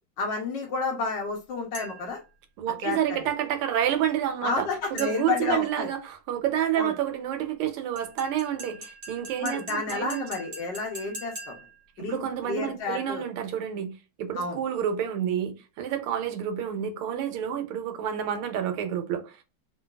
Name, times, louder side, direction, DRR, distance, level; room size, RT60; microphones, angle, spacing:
voice 1, 0.2-2.2 2.8-3.3 4.4-5.9 6.8-6.9 9.4-11.5 12.0-13.2 14.4-14.6, left 4 dB, 70° left, 1.2 m, -31 dB
sound 1, 1.7-2.2 5.0-5.5 8.0-11.8, right 2 dB, 50° right, 1.6 m, -41 dB
voice 2, 2.6-10.3 12.0-13.9 14.2-19.4, right 9 dB, 85° right, 1.6 m, -29 dB
3.8 x 2.2 x 2.2 m
omnidirectional pair, 2.4 m